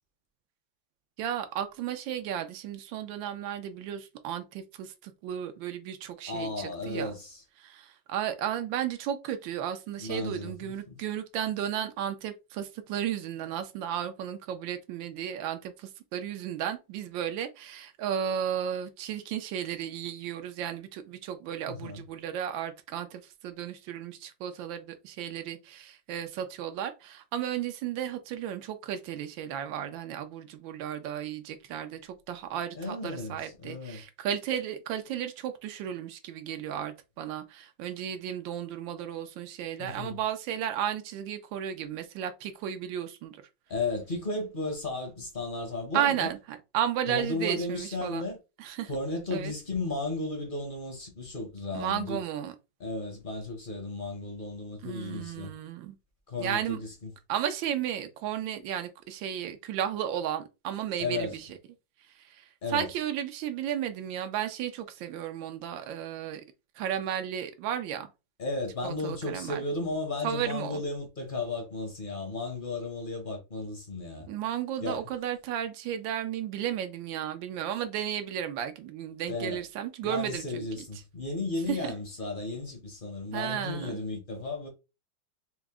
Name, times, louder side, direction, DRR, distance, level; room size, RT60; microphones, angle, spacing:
voice 1, 1.2-7.1 7.6-43.4 45.9-48.2 48.6-48.9 49.3-49.5 51.7-52.5 54.8-55.9 56.4-56.8 57.3-61.4 62.7-66.4 66.8-68.1 68.8-69.6 70.2-70.8 74.3-80.8 81.7-81.9 83.3-84.0, right 10 dB, 85° right, 1.4 m, -34 dB
voice 2, 6.3-7.4 10.0-11.0 21.7-22.0 32.7-34.0 39.8-40.2 43.7-46.3 47.1-48.4 48.9-52.2 52.8-55.5 56.3-57.1 61.0-61.4 62.6-62.9 68.4-74.3 74.8-75.0 79.3-79.6 80.0-84.7, left 2 dB, 45° left, 0.7 m, -34 dB
4.7 x 2.0 x 3.5 m
omnidirectional pair, 2.0 m